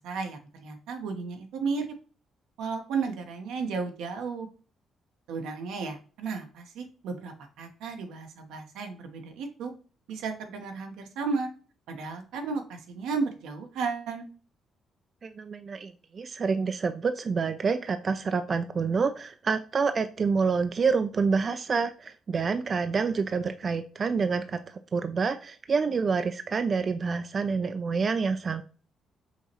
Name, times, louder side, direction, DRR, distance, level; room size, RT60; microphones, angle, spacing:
voice 1, 0.0-1.9 2.6-4.5 5.3-9.7 10.1-11.5 11.9-14.3, right 4 dB, 90° right, 4 dB, 0.9 m, -33 dB
voice 2, 15.2-28.6, right 5 dB, 40° right, 9 dB, 0.3 m, -27 dB
5.6 x 3.0 x 2.9 m, 0.38 s
cardioid pair, 90°, 0 cm